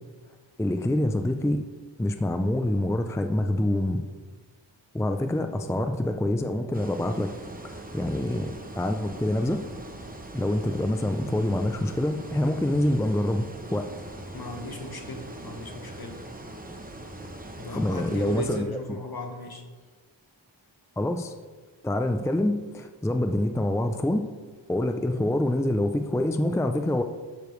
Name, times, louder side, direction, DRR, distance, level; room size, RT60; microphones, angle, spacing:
voice 1, 0.6-1.6 2.0-4.0 4.9-7.3 7.6-9.6 10.3-13.9 17.7-18.8 21.0-21.3 21.8-24.2 24.7-27.0, left 1 dB, 5° left, 6 dB, 0.4 m, -26 dB
sound 1, 6.7-18.6, right 1 dB, 20° right, 0.9 m, -41 dB
voice 2, 14.3-16.2 17.6-19.6, left 1 dB, 50° left, 3 dB, 1.4 m, -37 dB
12.0 x 6.8 x 3.2 m, 1.4 s
wide cardioid pair, 60°, 46 cm